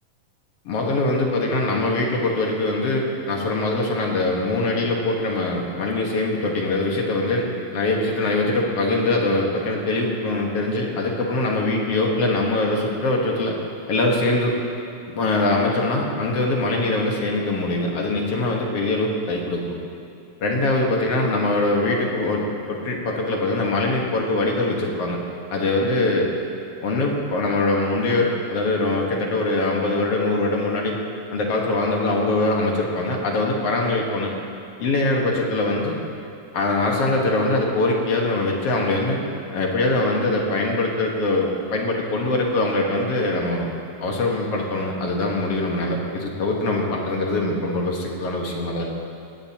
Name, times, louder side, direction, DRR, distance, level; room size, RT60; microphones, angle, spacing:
voice 1, 0.7-13.5 13.9-14.5 15.1-19.8 20.4-25.2 25.5-26.3 26.8-31.0 31.3-34.3 34.8-36.0 36.5-39.2 39.5-43.7 44.0-48.9, left 2 dB, 50° left, -1 dB, 2.2 m, -23 dB
19.5 x 17.0 x 3.0 m, 2.6 s
omnidirectional pair, 4.0 m